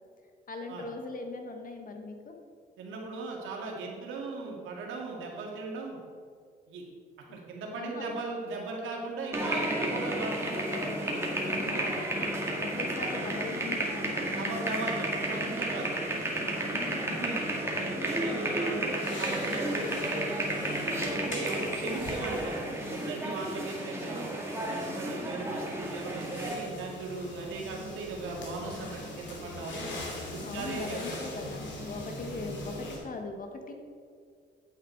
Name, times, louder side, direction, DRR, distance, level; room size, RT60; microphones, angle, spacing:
voice 1, 0.5-2.3 7.3-7.4 7.7-8.2 11.5-14.5 16.7-17.2 30.4-33.7, left 3 dB, 45° left, 4 dB, 1.4 m, -41 dB
voice 2, 2.8-6.0 6.7-6.8 7.3-12.3 12.7-12.9 14.1-17.4 17.7-18.9 19.2-24.3 24.7-29.9 30.3-31.1, right 3 dB, 85° right, -1 dB, 2.0 m, -38 dB
sound 1, 9.3-26.5, right 1 dB, 10° right, 1.9 m, -32 dB
sound 2, 18.9-33.0, left 1 dB, 70° left, 2.5 m, -42 dB
8.9 x 7.8 x 4.5 m, 2.2 s
cardioid pair, 90°, 20 cm